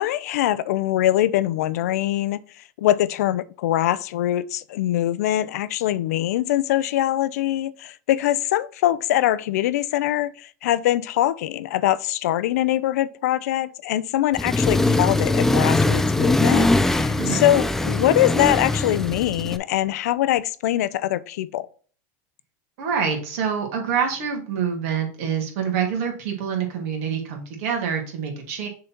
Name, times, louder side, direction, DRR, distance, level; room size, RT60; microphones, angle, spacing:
voice 1, 0.0-2.4 2.8-21.7, left 13 dB, 80° left, 0.5 m, -23 dB
Accelerating revving vroom, 14.3-19.6, left 2 dB, 5° left, 0.3 m, -21 dB
voice 2, 22.8-28.7, right 7 dB, 65° right, 2.6 m, -26 dB
6.4 x 4.0 x 4.4 m
supercardioid pair, 135°, 8 cm